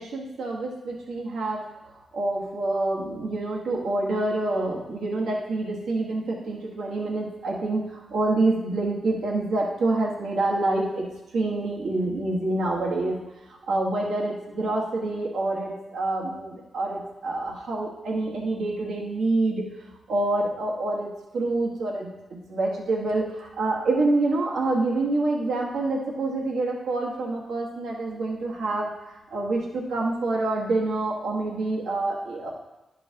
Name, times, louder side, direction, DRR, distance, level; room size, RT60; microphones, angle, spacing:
voice 1, 0.0-1.6 2.1-13.2 13.7-19.6 20.1-28.9 29.3-32.5, right 2 dB, 80° right, -3 dB, 1.2 m, -27 dB
10.5 x 5.5 x 2.8 m, 0.99 s
supercardioid pair, 50°, 0 cm